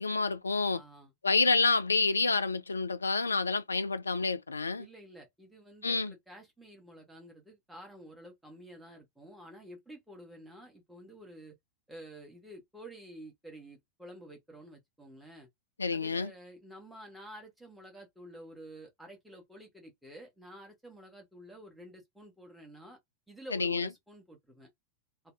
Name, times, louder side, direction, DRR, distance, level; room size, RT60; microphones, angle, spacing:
voice 1, 0.0-0.8 1.2-4.9 5.8-6.1 15.8-16.3 23.5-23.9, left 4 dB, 75° left, 0.3 m, -28 dB
voice 2, 0.7-1.1 4.8-11.5 11.9-15.5 15.9-23.0 23.3-24.7, right 1 dB, 5° right, 1.1 m, -50 dB
2.6 x 2.3 x 3.1 m
figure-of-eight pair, 90°, 0 cm